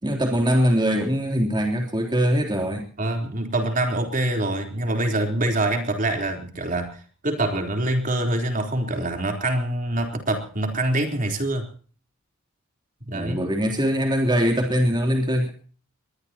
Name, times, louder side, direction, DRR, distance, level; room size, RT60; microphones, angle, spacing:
voice 1, 0.0-2.8 13.1-15.5, equal, 20° right, 2 dB, 3.4 m, -22 dB
voice 2, 3.0-11.7 13.1-13.4, right 1 dB, 40° right, 3 dB, 3.8 m, -25 dB
22.0 x 21.5 x 3.0 m, 0.42 s
head